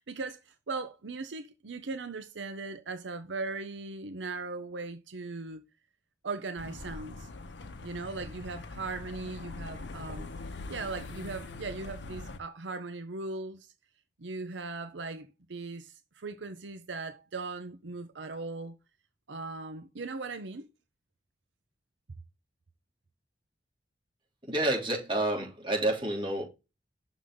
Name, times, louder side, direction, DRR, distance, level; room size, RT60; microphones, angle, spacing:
voice 1, 0.0-5.6 6.2-7.3 7.8-10.3 10.7-13.7 14.2-18.7 19.3-20.7, right 3 dB, 85° right, 0.7 m, -39 dB
sound 1, 6.6-12.4, left 3 dB, 75° left, 0.8 m, -42 dB
voice 2, 24.4-26.4, right 1 dB, 30° right, 2.9 m, -29 dB
6.4 x 4.0 x 5.3 m
head